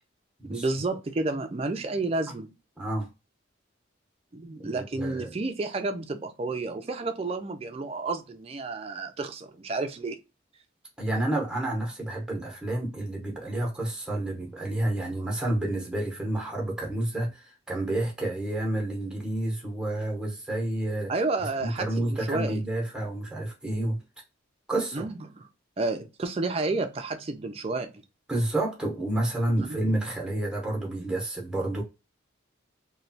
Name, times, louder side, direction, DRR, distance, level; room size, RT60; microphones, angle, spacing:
voice 1, 0.5-2.5 4.3-10.2 21.1-22.6 24.9-25.2 25.8-27.9 29.6-29.7, right 3 dB, 30° right, 0.3 m, -31 dB
voice 2, 2.8-3.1 4.6-5.4 11.0-21.1 21.6-24.0 24.7-25.1 28.3-31.8, right 1 dB, 5° right, 0.8 m, -29 dB
3.0 x 2.2 x 2.6 m
head